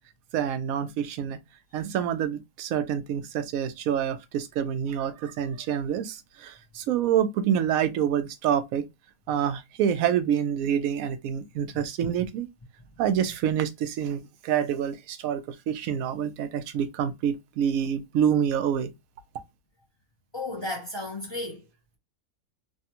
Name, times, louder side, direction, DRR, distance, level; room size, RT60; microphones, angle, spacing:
voice 1, 0.3-1.4 1.7-8.9 9.3-12.5 13.0-18.9, right 9 dB, 85° right, 1.0 m, -27 dB
voice 2, 20.3-21.6, left 2 dB, 25° left, 0.8 m, -33 dB
3.3 x 2.3 x 2.7 m
omnidirectional pair, 1.4 m